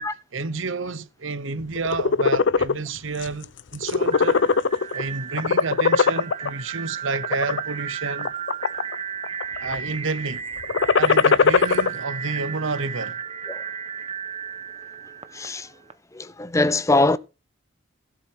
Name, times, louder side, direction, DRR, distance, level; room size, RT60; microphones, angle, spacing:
voice 1, 0.3-4.4 4.9-8.3 9.6-10.5 10.9-13.2, right 4 dB, 80° right, 0.9 m, -30 dB
sound 1, 1.8-2.7 3.2-3.4 3.7-5.0 5.4-6.5 7.1-7.6 8.2-8.9 9.2-9.7 10.6-11.9, left 5 dB, 60° left, 0.6 m, -19 dB
sound 2, 4.1-15.9, right 7 dB, 30° right, 1.0 m, -34 dB
voice 2, 15.3-15.7 16.1-17.2, left 2 dB, 15° left, 0.7 m, -22 dB
16.5 x 7.9 x 4.7 m
head